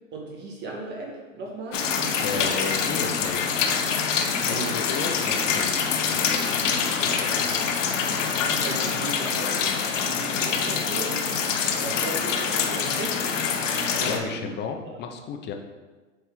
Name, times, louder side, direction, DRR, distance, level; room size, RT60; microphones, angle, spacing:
voice 1, 0.1-2.7 4.4-4.7 8.5-11.4 11.8-13.2 13.9-14.5, right 2 dB, 25° right, -1 dB, 1.9 m, -36 dB
sound 1, 1.7-14.2, left 6 dB, 70° left, 1.0 m, -25 dB
voice 2, 2.2-3.6 4.5-7.7 14.0-15.5, left 6 dB, 25° left, 4 dB, 0.8 m, -34 dB
7.9 x 4.4 x 3.9 m, 1.3 s
hypercardioid pair, 115°, 39 cm